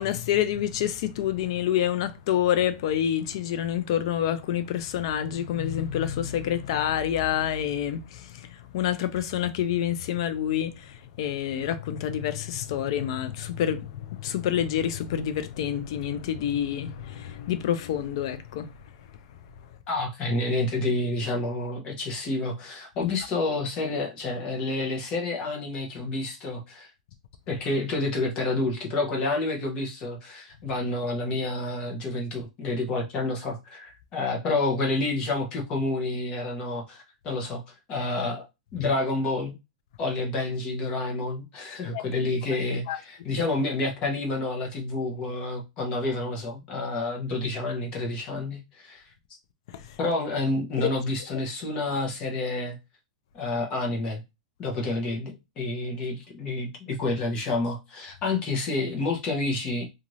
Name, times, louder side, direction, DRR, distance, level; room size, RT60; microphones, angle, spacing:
voice 1, 0.0-18.7 23.0-23.1 41.9-42.0 42.9-43.0 49.7-50.0, left 10 dB, 45° left, 0.4 m, -28 dB
voice 2, 19.9-26.9 27.5-37.6 37.9-38.5 38.7-39.5 40.0-49.0 50.0-52.8 53.3-54.2 54.6-59.9, left 2 dB, 25° left, 0.8 m, -29 dB
2.6 x 2.4 x 3.1 m
supercardioid pair, 165°, 4 cm